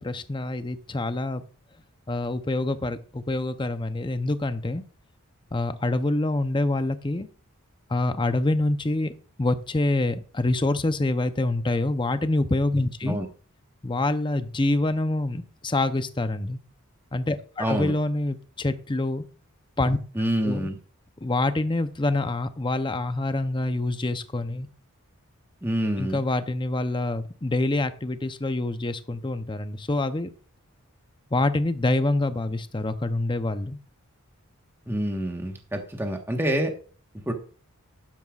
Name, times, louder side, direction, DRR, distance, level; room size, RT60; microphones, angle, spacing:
voice 1, 0.0-1.4 2.1-4.8 5.5-7.3 7.9-9.1 9.4-13.2 13.8-16.6 17.1-19.2 19.8-20.0 20.4-20.7 21.2-24.7 26.0-30.3 31.3-33.8, left 2 dB, 20° left, 10 dB, 0.6 m, -26 dB
voice 2, 17.6-17.9 20.1-20.8 25.6-26.2 34.9-36.7 37.3-37.4, right 1 dB, 10° right, 3 dB, 1.3 m, -27 dB
12.0 x 9.7 x 2.4 m, 0.41 s
head